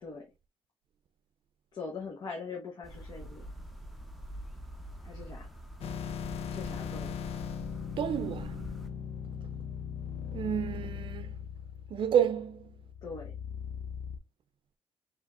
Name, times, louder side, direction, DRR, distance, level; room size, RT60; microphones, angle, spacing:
voice 1, 1.7-3.4 5.0-5.5 6.5-7.2 13.0-13.4, left 4 dB, 45° left, 1.0 m, -42 dB
sound 1, 2.8-8.9, equal, ahead, 0.7 m, -45 dB
sound 2, 5.8-14.2, left 8 dB, 80° left, 0.6 m, -39 dB
voice 2, 8.0-8.6 10.3-11.4 11.9-12.8, right 9 dB, 55° right, 0.5 m, -30 dB
5.2 x 3.4 x 2.5 m
cardioid pair, 160°, 10 cm